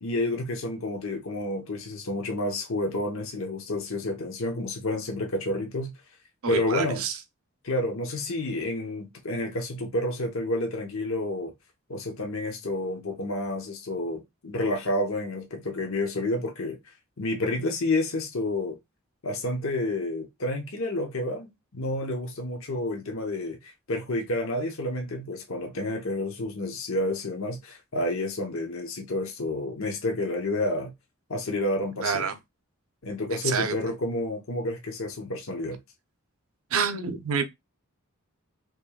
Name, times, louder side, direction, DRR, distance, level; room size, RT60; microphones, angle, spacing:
voice 1, 0.0-5.9 6.5-7.0 7.6-11.5 11.9-16.8 17.2-18.8 19.2-21.5 21.7-30.9 31.3-32.3 33.0-35.8, left 1 dB, 70° left, 0.9 m, -30 dB
voice 2, 6.4-7.2 32.0-32.4 33.3-33.8 36.7-37.5, right 6 dB, 75° right, 0.7 m, -28 dB
5.1 x 3.1 x 2.3 m
head